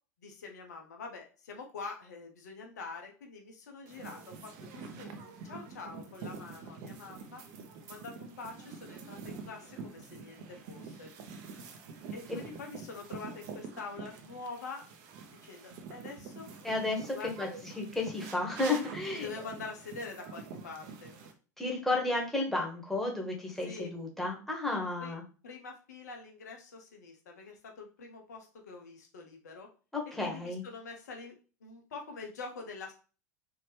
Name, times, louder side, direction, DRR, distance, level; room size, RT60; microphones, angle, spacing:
voice 1, 0.2-7.4 7.8-11.1 12.1-14.8 15.4-16.5 17.1-17.3 19.1-21.1 23.6-23.9 25.0-25.1 25.4-29.7 30.2-31.3 31.6-32.9, left 4 dB, 70° left, 2 dB, 1.0 m, -45 dB
sound 1, 3.9-21.3, right 5 dB, 50° right, 0.9 m, -46 dB
voice 2, 16.6-17.5 17.8-19.3 21.6-25.2 29.9-30.6, left 2 dB, 5° left, -1 dB, 1.6 m, -32 dB
4.5 x 2.9 x 3.3 m, 0.36 s
figure-of-eight pair, 85°, 9 cm